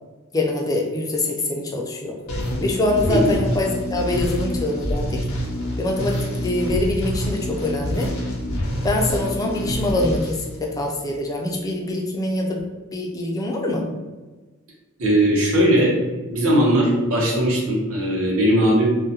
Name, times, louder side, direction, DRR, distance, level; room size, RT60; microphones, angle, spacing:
voice 1, 0.3-2.2 2.6-5.2 5.8-8.1 8.8-12.6 12.9-13.9, left 2 dB, 15° left, 0 dB, 0.3 m, -24 dB
sound 1, 2.3-11.1, equal, 80° left, 0.6 m, -27 dB
voice 2, 15.0-15.9 16.3-18.9, right 1 dB, 75° right, -3 dB, 0.8 m, -18 dB
2.3 x 2.1 x 2.7 m, 1.2 s
head